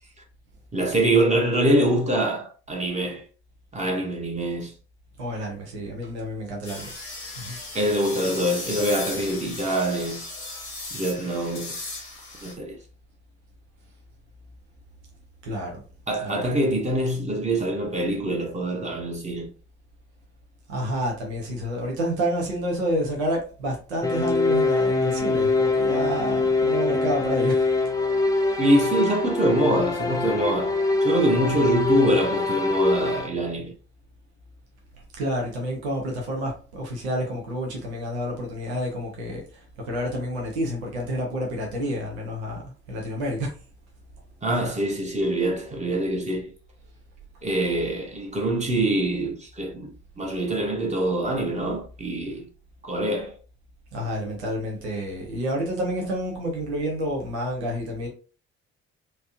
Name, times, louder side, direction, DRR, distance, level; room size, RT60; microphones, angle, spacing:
voice 1, 0.7-3.2 3.7-4.7 7.7-10.2 10.9-11.8 12.4-12.8 16.1-19.5 28.6-33.7 44.4-46.5 47.4-52.5 52.8-53.3, right 1 dB, 20° right, 1.0 m, -24 dB
voice 2, 5.2-6.9 7.4-7.6 15.4-15.8 16.2-16.5 20.7-27.7 35.2-39.4 39.9-42.6 42.9-43.5 44.5-44.7 53.9-58.1, equal, 75° right, 0.9 m, -29 dB
sound 1, 6.6-12.5, left 2 dB, 85° left, 1.0 m, -36 dB
sound 2, 24.0-33.3, left 3 dB, 10° left, 0.6 m, -23 dB
3.3 x 2.7 x 2.5 m
figure-of-eight pair, 45°, 33 cm